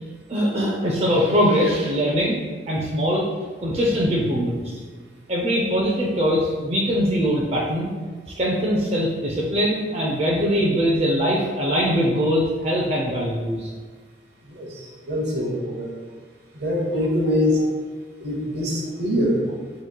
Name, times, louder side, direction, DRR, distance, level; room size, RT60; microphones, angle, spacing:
voice 1, 0.3-2.4 2.7-3.3 3.6-4.8 5.3-7.9 8.3-13.7, equal, 35° right, -3 dB, 0.5 m, -22 dB
voice 2, 14.4-15.9 16.5-17.6 18.2-19.4, left 1 dB, 65° right, -1 dB, 0.8 m, -24 dB
6.1 x 2.9 x 2.2 m, 1.5 s
head